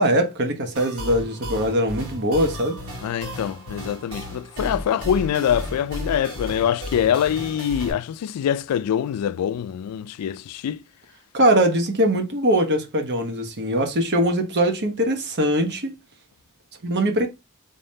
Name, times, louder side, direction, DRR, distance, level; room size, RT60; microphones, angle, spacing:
voice 1, 0.0-2.8 11.3-15.9 16.8-17.3, right 1 dB, 50° right, 1.0 m, -21 dB
Overworld Synth and bass, 0.7-7.9, equal, 70° right, 2.7 m, -34 dB
voice 2, 3.0-10.8, left 9 dB, 90° left, 0.3 m, -24 dB
3.7 x 3.6 x 2.7 m
head